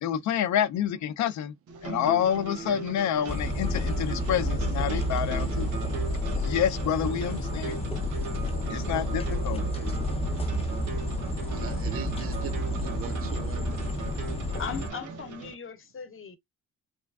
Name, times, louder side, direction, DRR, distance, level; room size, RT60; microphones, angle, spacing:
voice 1, 0.0-1.5 1.8-5.7 6.3-7.8 8.7-9.6, left 9 dB, 70° left, 0.5 m, -28 dB
sound 1, 1.7-15.5, right 5 dB, 80° right, 0.9 m, -39 dB
sound 2, 3.3-14.9, left 1 dB, 20° left, 0.6 m, -30 dB
voice 2, 11.2-13.8, right 9 dB, 50° right, 0.4 m, -40 dB
voice 3, 14.6-16.4, left 6 dB, 45° left, 0.8 m, -38 dB
3.0 x 2.3 x 2.3 m
cardioid pair, 90°, 30 cm